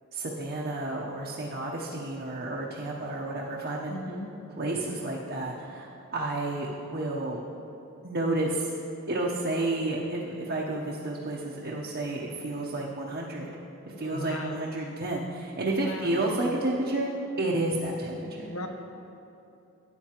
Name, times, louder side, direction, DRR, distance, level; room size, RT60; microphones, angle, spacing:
voice 1, 0.1-4.0 4.6-7.4 8.0-8.7 9.1-13.5 13.9-17.1 17.4-18.5, right 2 dB, 45° right, -4 dB, 0.8 m, -31 dB
voice 2, 3.9-4.3 13.9-14.6 15.8-16.2 18.4-18.7, left 1 dB, 70° left, 4 dB, 0.8 m, -37 dB
12.5 x 9.3 x 2.9 m, 2.8 s
head